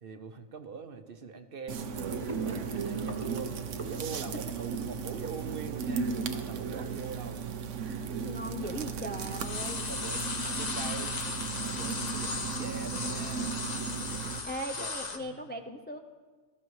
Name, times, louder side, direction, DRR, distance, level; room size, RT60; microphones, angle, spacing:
voice 1, 0.0-1.9 2.3-3.6 3.9-7.5 8.6-9.0 9.7-11.2 11.6-13.6 14.8-14.9 15.2-15.5, right 5 dB, 55° right, 8 dB, 1.0 m, -43 dB
sound 1, 1.7-14.4, right 6 dB, 90° right, 1.1 m, -36 dB
Gurgling / Sink (filling or washing), 2.1-6.5, right 1 dB, 25° right, 1.2 m, -44 dB
sound 2, 7.9-8.0 8.3-8.9 9.2-15.2, left 4 dB, 40° left, 0.9 m, -36 dB
voice 2, 8.2-9.9 14.4-16.0, equal, 15° left, 4 dB, 0.3 m, -38 dB
19.0 x 14.0 x 3.2 m, 1.4 s
omnidirectional pair, 1.2 m